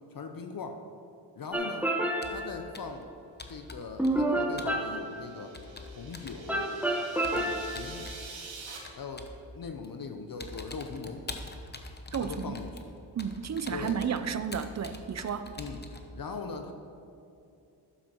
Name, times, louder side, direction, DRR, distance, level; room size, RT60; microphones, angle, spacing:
voice 1, 0.1-0.8 1.3-1.9 2.3-3.1 3.5-5.6 5.9-6.7 7.3-8.1 9.0-11.3 12.2-12.8 13.7-14.0 15.6-15.8 16.1-16.7, left 4 dB, 50° left, 6 dB, 0.7 m, -40 dB
sound 1, 1.5-2.6 4.0-5.5 6.5-7.9, right 1 dB, 5° right, 1.0 m, -29 dB
Computer keyboard, 2.2-2.5 2.7-3.0 3.4-4.3 4.6-4.8 5.5-6.4 7.2-8.2 8.8-9.4 9.8-10.0 10.4-16.1, left 2 dB, 20° left, 0.9 m, -44 dB
sound 2, 4.7-8.8, right 4 dB, 90° right, 1.4 m, -47 dB
voice 2, 12.1-12.6 13.2-15.5, right 7 dB, 35° right, 11 dB, 0.6 m, -32 dB
12.5 x 7.2 x 3.0 m, 2.7 s
cardioid pair, 50°, 45 cm